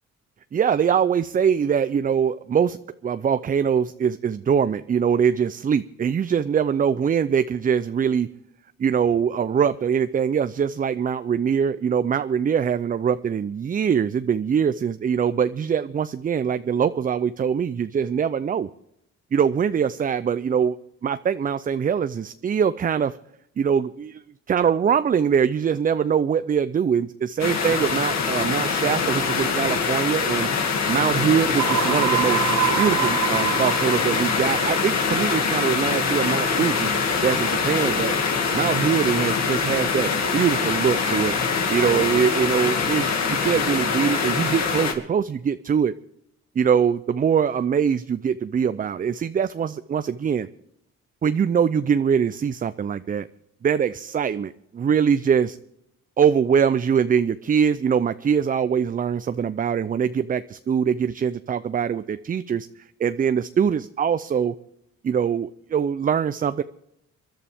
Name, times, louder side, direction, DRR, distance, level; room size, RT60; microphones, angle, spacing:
voice 1, 0.5-2.8 3.0-8.3 8.8-18.7 19.3-20.8 21.0-23.2 23.6-24.2 24.5-30.5 30.9-32.4 32.8-36.9 37.2-38.1 38.5-41.3 41.7-45.9 46.6-50.5 51.2-53.3 53.6-55.6 56.2-62.7 63.0-64.5 65.0-66.6, right 7 dB, 30° right, 13 dB, 0.4 m, -23 dB
sound 1, 27.4-44.9, left 5 dB, 60° left, 2.3 m, -23 dB
sound 2, 31.6-35.5, right 17 dB, 75° right, 0.6 m, -27 dB
25.5 x 11.5 x 3.5 m, 0.78 s
cardioid pair, 90°, 30 cm